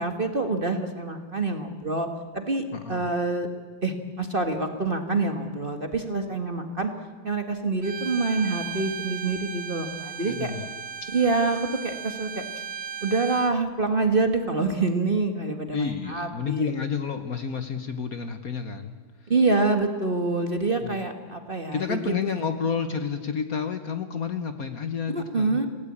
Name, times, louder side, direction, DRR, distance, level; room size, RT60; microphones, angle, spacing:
voice 1, 0.0-2.1 2.3-2.6 2.9-3.5 3.8-6.9 7.2-10.5 11.1-11.6 11.8-12.4 13.0-16.7 19.3-22.0 25.1-25.7, right 3 dB, 30° right, 6 dB, 1.5 m, -26 dB
voice 2, 2.7-3.1 10.3-10.7 15.7-19.3 20.8-21.0 21.7-25.6, left 6 dB, 50° left, 8 dB, 1.4 m, -30 dB
Bowed string instrument, 7.8-13.6, right 6 dB, 60° right, 0.6 m, -36 dB
28.0 x 17.5 x 8.6 m, 1.4 s
omnidirectional pair, 2.2 m